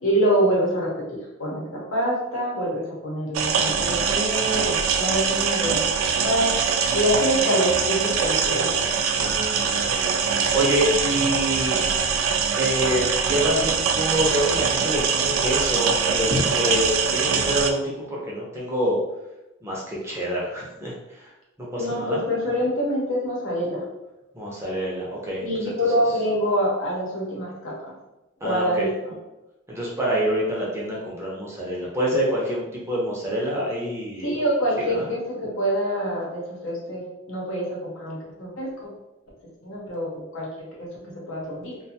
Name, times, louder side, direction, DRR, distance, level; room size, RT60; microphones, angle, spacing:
voice 1, 0.0-5.9 6.2-6.6 6.9-8.8 21.7-23.8 25.4-27.7 28.4-28.9 34.2-37.0 37.3-38.9 39.6-41.8, equal, 75° left, -4 dB, 0.9 m, -25 dB
sound 1, 3.3-17.7, right 6 dB, 80° right, 0.3 m, -23 dB
voice 2, 9.1-11.8 12.6-19.0 19.6-21.3 21.6-22.2 24.3-25.7 28.4-28.9 29.7-34.3 34.8-35.1, equal, 15° right, -5 dB, 0.6 m, -27 dB
2.5 x 2.3 x 2.7 m, 0.98 s
head